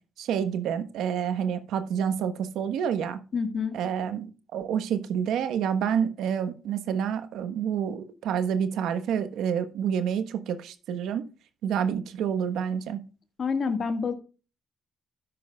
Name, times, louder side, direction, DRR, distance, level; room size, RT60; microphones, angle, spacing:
voice 1, 0.2-3.2 3.7-11.2 11.6-13.0, right 8 dB, 80° right, 10 dB, 1.2 m, -28 dB
voice 2, 3.3-3.7 13.4-14.1, left 5 dB, 50° left, 8 dB, 1.7 m, -27 dB
13.0 x 10.0 x 2.3 m, 0.34 s
cardioid pair, 90°, 0 cm